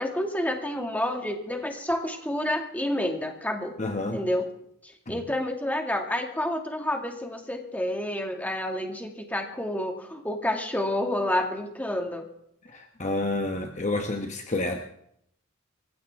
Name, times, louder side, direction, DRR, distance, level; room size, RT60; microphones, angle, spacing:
voice 1, 0.0-3.8 4.1-4.5 4.8-12.3, left 1 dB, 5° left, 3 dB, 2.0 m, -29 dB
voice 2, 3.8-4.2 13.0-14.8, left 2 dB, 30° left, 4 dB, 1.0 m, -28 dB
25.0 x 15.5 x 3.5 m, 0.73 s
head